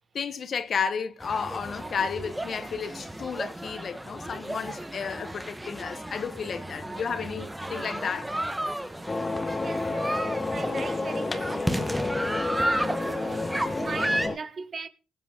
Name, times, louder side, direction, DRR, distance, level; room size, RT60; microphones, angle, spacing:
voice 1, 0.1-8.3, left 6 dB, 55° left, 1.1 m, -32 dB
sound 1, 1.2-14.3, right 1 dB, 10° right, 1.5 m, -33 dB
sound 2, 9.1-14.4, left 3 dB, 30° left, 1.4 m, -30 dB
voice 2, 9.6-12.1 12.5-14.9, right 5 dB, 45° right, 1.5 m, -39 dB
19.0 x 8.2 x 3.9 m
cardioid pair, 75°, 0 cm